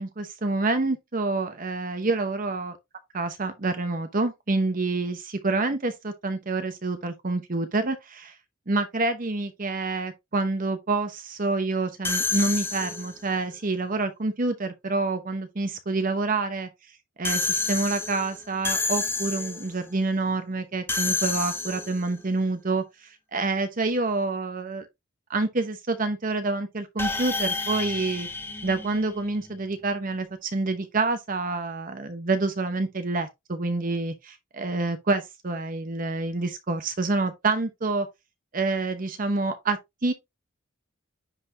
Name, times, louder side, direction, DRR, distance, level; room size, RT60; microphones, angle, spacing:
voice 1, 0.0-2.8 3.1-8.3 8.7-16.7 17.2-24.9 25.3-28.3 28.6-38.1 38.5-40.1, right 3 dB, 40° right, 0.9 m, -27 dB
sound 1, 12.0-13.3 17.2-19.8 20.9-22.2 27.0-29.5, left 3 dB, 10° left, 0.9 m, -29 dB
9.9 x 4.1 x 2.6 m
head